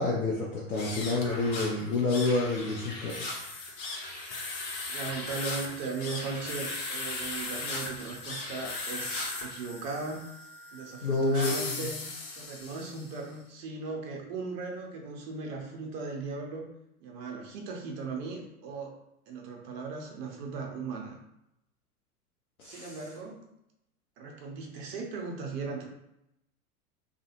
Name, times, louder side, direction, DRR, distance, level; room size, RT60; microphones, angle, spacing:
voice 1, 0.0-3.2 11.0-11.9 22.6-23.0, left 3 dB, 75° left, -4 dB, 0.7 m, -29 dB
sound 1, 0.7-13.2, left 3 dB, 25° left, 0.3 m, -38 dB
voice 2, 4.9-10.2 10.7-16.7 17.0-18.9 19.3-21.2 22.6-23.4 24.2-25.8, right 4 dB, 45° right, 1 dB, 0.8 m, -38 dB
2.4 x 2.4 x 2.8 m, 0.83 s
figure-of-eight pair, 95°, 44 cm